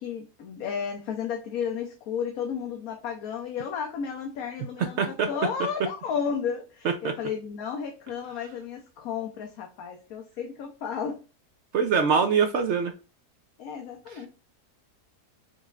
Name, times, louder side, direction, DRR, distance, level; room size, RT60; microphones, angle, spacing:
voice 1, 0.0-11.2 13.6-14.3, left 7 dB, 70° left, 1.1 m, -33 dB
voice 2, 5.0-5.3 7.0-7.1 11.7-12.9 14.1-14.3, right 6 dB, 75° right, 0.6 m, -23 dB
6.4 x 3.1 x 2.3 m
omnidirectional pair, 1.7 m